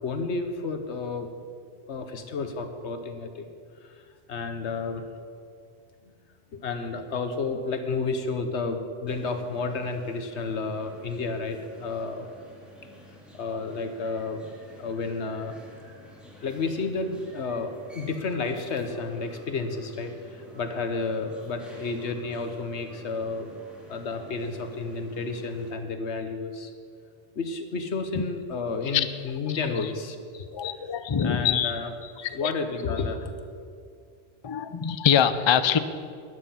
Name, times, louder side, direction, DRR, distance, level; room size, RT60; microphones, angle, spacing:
voice 1, 0.0-1.3 1.9-3.5 3.8-4.0 4.3-5.0 6.5-12.3 13.3-14.4 14.8-15.5 16.4-23.5 23.9-26.7 27.3-30.5 31.2-33.3, left 4 dB, 90° left, 7 dB, 1.3 m, -31 dB
sound 1, 9.1-25.7, left 1 dB, ahead, 2.2 m, -50 dB
voice 2, 30.5-31.7 32.4-32.5 34.4-35.8, left 8 dB, 40° left, 12 dB, 0.4 m, -23 dB
12.5 x 9.8 x 5.7 m, 2.2 s
omnidirectional pair, 1.1 m